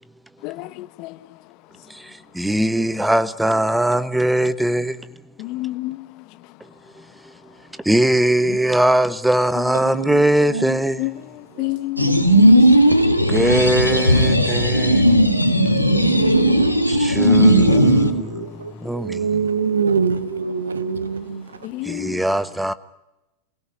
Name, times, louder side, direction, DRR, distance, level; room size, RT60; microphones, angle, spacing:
voice 1, 0.4-1.2 5.4-6.2 8.5-8.6 11.0-12.4 15.5-16.2 17.7-18.0 18.4-19.0 21.6-22.2, left 20 dB, 40° left, 1.0 m, -30 dB
voice 2, 1.9-5.1 7.0-7.5 7.8-11.1 13.3-15.2 16.9-19.6 21.8-22.7, right 1 dB, 5° right, 1.1 m, -21 dB
sound 1, 12.0-18.1, equal, 90° right, 2.1 m, -15 dB
voice 3, 12.1-12.5 14.9-15.3 15.9-16.7 17.6-21.5, right 6 dB, 70° right, 1.4 m, -25 dB
28.0 x 17.5 x 9.8 m
figure-of-eight pair, 90°, 0 cm